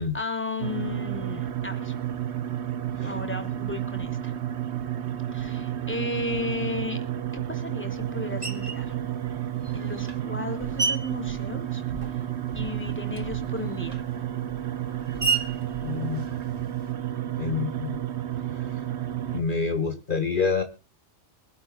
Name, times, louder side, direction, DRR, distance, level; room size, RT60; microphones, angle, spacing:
voice 1, 0.0-1.9 3.0-4.3 5.3-7.0 7.3-9.0 9.7-11.8 12.1-12.2 12.5-14.0, left 3 dB, 10° left, 6 dB, 3.2 m, -34 dB
sound 1, 0.6-19.4, right 11 dB, 65° right, 1.2 m, -31 dB
Screech, 8.4-8.9 9.6-12.3 12.6-16.9, right 4 dB, 30° right, 2.2 m, -33 dB
voice 2, 15.8-16.3 17.4-18.0 18.6-18.8 19.3-20.6, left 5 dB, 45° left, 5 dB, 2.2 m, -27 dB
25.0 x 11.5 x 2.5 m, 0.32 s
omnidirectional pair, 1.3 m